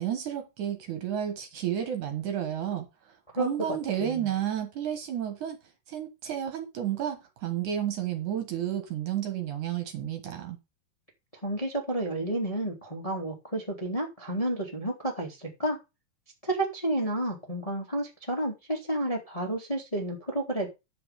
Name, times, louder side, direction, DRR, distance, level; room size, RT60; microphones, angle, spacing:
voice 1, 0.0-2.9 3.4-5.6 5.9-10.6, right 10 dB, 60° right, 2.5 m, -31 dB
voice 2, 4.0-4.3 11.4-15.8 16.4-20.7, right 1 dB, 15° left, 1.6 m, -31 dB
10.5 x 7.0 x 5.1 m
omnidirectional pair, 4.4 m